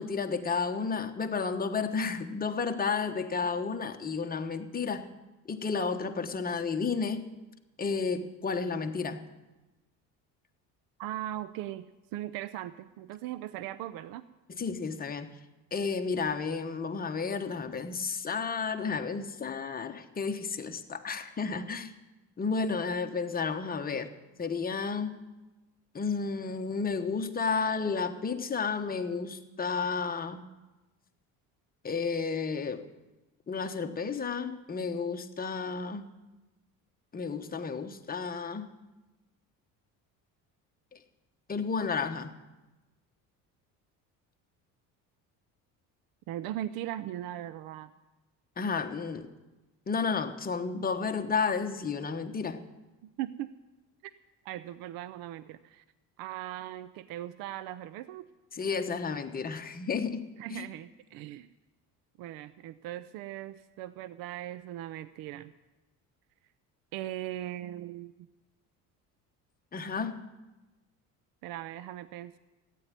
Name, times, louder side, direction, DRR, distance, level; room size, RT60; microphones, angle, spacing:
voice 1, 0.0-5.1 5.4-7.3 7.8-9.3 14.5-15.3 15.7-21.9 22.4-24.1 24.4-25.2 25.9-30.4 31.8-32.8 33.5-36.1 37.1-38.7 40.9-41.0 41.5-42.3 48.6-49.3 49.9-52.6 58.5-60.6 69.7-70.2, left 5 dB, 25° left, 6 dB, 1.2 m, -32 dB
voice 2, 11.0-11.9 12.1-14.3 46.3-47.9 53.2-53.6 54.4-55.8 56.2-58.3 60.4-61.5 62.2-65.5 66.9-68.3 71.4-72.4, right 13 dB, 75° right, 14 dB, 0.6 m, -39 dB
14.5 x 9.4 x 9.5 m, 1.1 s
cardioid pair, 100°, 35 cm